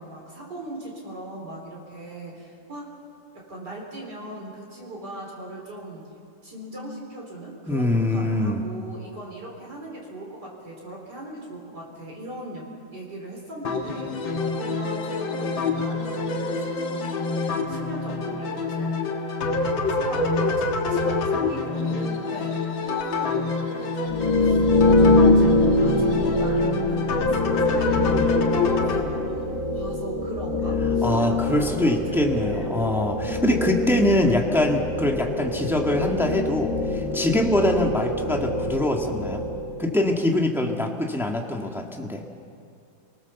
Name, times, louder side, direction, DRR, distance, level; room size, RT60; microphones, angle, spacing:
voice 1, 0.0-2.9 3.3-6.1 6.4-19.0 19.9-32.9, right 1 dB, 60° right, -2 dB, 4.4 m, -39 dB
voice 2, 7.7-8.6 31.0-39.4 39.8-42.2, left 1 dB, ahead, 1 dB, 1.6 m, -23 dB
sound 1, 13.6-29.0, left 3 dB, 85° left, 2.5 m, -26 dB
sound 2, 24.1-39.8, left 2 dB, 60° left, 3.4 m, -24 dB
27.5 x 19.0 x 7.0 m, 2.4 s
omnidirectional pair, 2.1 m